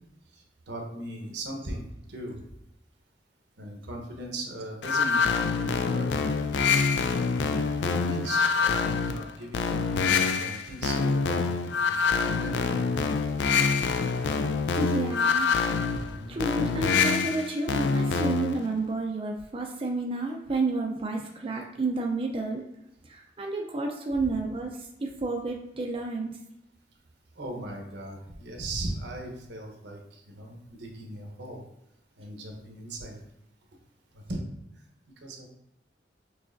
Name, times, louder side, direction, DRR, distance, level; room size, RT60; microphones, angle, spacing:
voice 1, 0.3-2.4 3.6-6.3 7.5-11.5 11.8-12.9 16.0-16.4 27.3-31.6 32.2-33.2 34.1-34.4 35.2-35.5, right 1 dB, 80° right, 1 dB, 1.0 m, -39 dB
sound 1, 4.8-18.6, left 5 dB, 75° left, 0.4 m, -26 dB
voice 2, 14.8-15.9 16.3-22.6 23.1-26.3, right 3 dB, 30° right, 0 dB, 0.4 m, -31 dB
6.1 x 3.2 x 2.5 m, 0.84 s
head